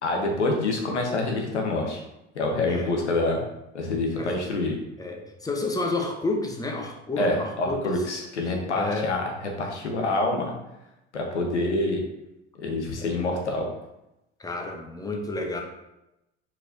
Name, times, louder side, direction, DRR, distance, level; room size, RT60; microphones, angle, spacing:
voice 1, 0.0-2.0 2.3-3.4 3.7-4.7 7.2-9.2 9.6-10.5 11.1-12.0 12.6-13.7, left 2 dB, 90° left, 1 dB, 0.9 m, -26 dB
voice 2, 5.0-8.1 8.7-9.1 13.0-13.3 14.4-15.6, left 2 dB, 10° left, 3 dB, 0.8 m, -30 dB
4.5 x 4.3 x 2.6 m, 0.89 s
hypercardioid pair, 70°, 34 cm